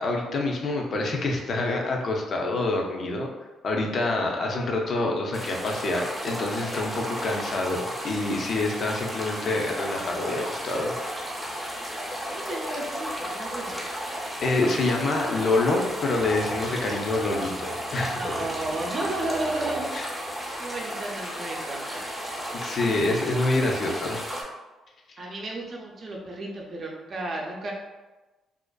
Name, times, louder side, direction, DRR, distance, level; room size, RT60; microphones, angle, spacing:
voice 1, 0.0-3.3 3.6-10.9 13.7-14.0 14.4-18.5 19.9-20.1 22.5-24.2 25.1-25.2, left 2 dB, 50° left, 1 dB, 0.4 m, -27 dB
sound 1, 5.3-24.4, equal, ahead, 0.6 m, -34 dB
voice 2, 12.3-13.8 18.1-20.3 20.6-22.0 25.2-27.7, right 2 dB, 50° right, -1 dB, 0.5 m, -33 dB
sound 2, 15.4-20.2, equal, 75° left, 0.9 m, -45 dB
2.4 x 2.4 x 2.2 m, 1.2 s
cardioid pair, 90°, 0 cm